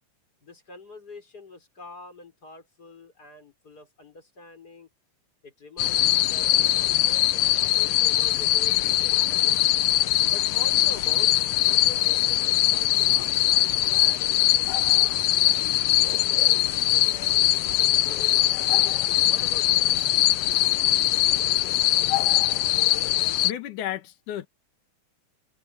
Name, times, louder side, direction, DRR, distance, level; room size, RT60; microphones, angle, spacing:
voice 1, 0.4-4.9 5.4-9.4 10.2-11.3 11.6-15.4 16.1-19.9, left 2 dB, 30° left, 4.9 m, -45 dB
sound 1, 5.8-23.5, left 14 dB, 90° left, 1.3 m, -22 dB
voice 2, 23.4-24.5, left 11 dB, 70° left, 3.0 m, -32 dB
omnidirectional pair, 3.7 m